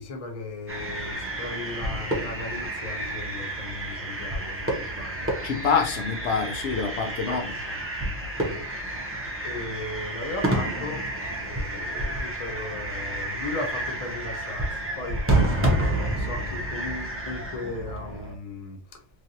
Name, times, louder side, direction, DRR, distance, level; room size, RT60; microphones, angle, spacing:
voice 1, 0.0-5.3 7.3-7.8 8.4-8.7 9.4-11.1 11.4-15.4 15.7-19.0, left 3 dB, 40° left, 0.6 m, -37 dB
sound 1, 0.7-18.3, right 1 dB, 20° right, 0.4 m, -29 dB
voice 2, 5.4-7.4, left 5 dB, 65° left, 0.9 m, -26 dB
3.2 x 2.6 x 2.7 m
omnidirectional pair, 1.3 m